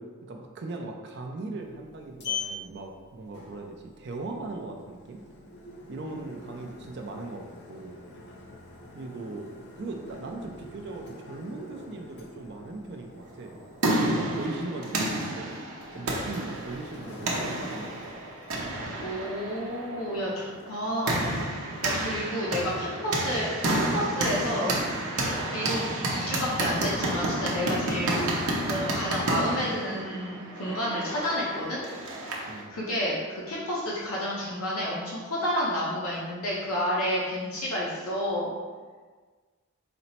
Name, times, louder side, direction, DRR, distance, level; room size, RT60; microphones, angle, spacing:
voice 1, 0.0-5.2 5.9-8.0 8.9-15.6 15.9-18.2 32.4-32.7, right 2 dB, 50° right, 2 dB, 0.4 m, -39 dB
Sliding door, 1.6-19.9, left 3 dB, 50° left, 0.5 m, -44 dB
sound 1, 13.4-32.6, right 1 dB, 90° right, 0.7 m, -30 dB
voice 2, 19.0-21.4 21.8-24.8 25.5-25.8 26.1-28.3 28.7-31.8 32.7-38.5, equal, 85° left, -6 dB, 0.7 m, -30 dB
4.2 x 2.0 x 4.2 m, 1.4 s
head